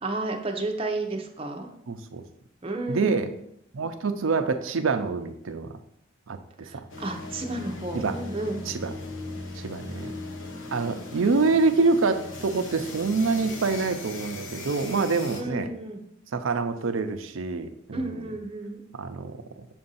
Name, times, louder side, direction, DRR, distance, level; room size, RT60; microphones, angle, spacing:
voice 1, 0.0-1.7 2.6-3.2 6.6-8.7 15.3-16.0 17.9-18.8, right 2 dB, 30° right, 3 dB, 0.7 m, -32 dB
voice 2, 1.9-2.2 2.9-3.3 3.7-5.8 6.3-6.9 7.9-8.2 8.7-8.9 9.5-10.2 10.7-15.7 16.3-18.3 18.9-19.7, right 4 dB, 80° right, 8 dB, 0.6 m, -26 dB
sound 1, 6.9-15.4, left 2 dB, 70° left, 0.9 m, -38 dB
7.1 x 2.6 x 5.5 m, 0.76 s
head